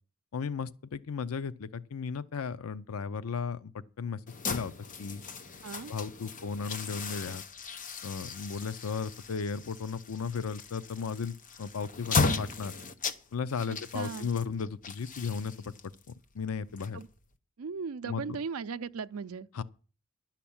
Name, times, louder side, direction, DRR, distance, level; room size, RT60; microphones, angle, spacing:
voice 1, 0.3-4.2 4.5-4.7 5.0-5.2 5.9-7.4 8.0-12.7 13.3-15.7 16.3-17.0 18.1-18.4 19.5-19.6, left 5 dB, 85° left, 0.5 m, -35 dB
sound 1, 4.3-17.3, left 4 dB, 40° left, 0.8 m, -36 dB
voice 2, 13.7-14.3 16.9-17.1 17.6-19.5, right 5 dB, 80° right, 0.5 m, -37 dB
11.5 x 5.8 x 8.6 m
head